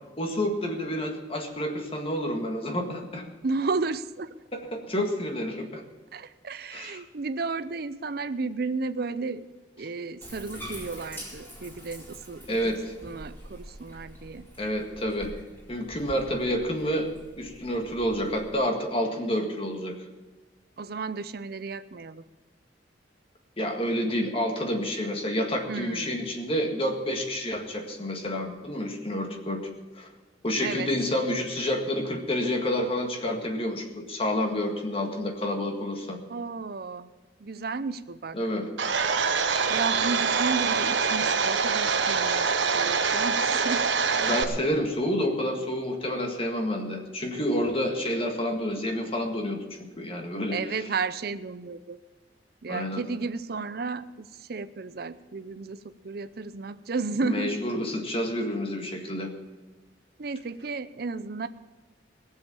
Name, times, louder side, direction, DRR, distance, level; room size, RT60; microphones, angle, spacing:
voice 1, 0.2-3.3 4.5-5.8 6.7-7.0 12.5-12.9 14.6-15.3 15.7-17.1 17.4-20.0 23.6-29.6 29.9-30.1 30.4-36.2 38.3-38.7 44.2-50.9 52.7-53.0 57.2-59.3, left 1 dB, 30° left, 3 dB, 1.8 m, -29 dB
voice 2, 3.4-4.3 6.1-9.5 9.8-12.6 13.0-14.5 20.8-22.2 25.7-26.2 30.6-30.9 36.3-37.1 37.4-38.4 39.7-43.9 50.5-52.0 52.6-57.6 60.2-61.5, right 4 dB, 60° right, 12 dB, 0.6 m, -33 dB
Bathtub (filling or washing), 10.2-18.5, equal, 10° left, 4.2 m, -45 dB
Domestic sounds home sounds, 38.8-44.4, right 5 dB, 85° right, 1.0 m, -25 dB
18.0 x 7.7 x 7.0 m, 1.3 s
head